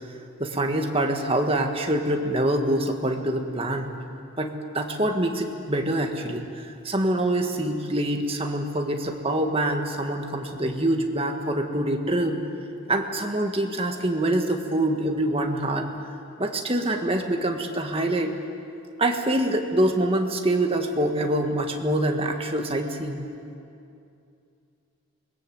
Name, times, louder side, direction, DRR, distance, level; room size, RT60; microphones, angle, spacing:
voice 1, 0.4-3.9 4.4-6.4 6.9-12.4 12.9-15.9 16.4-18.3 19.0-23.2, right 1 dB, 25° right, 3 dB, 1.7 m, -25 dB
26.0 x 21.0 x 7.9 m, 2.6 s
head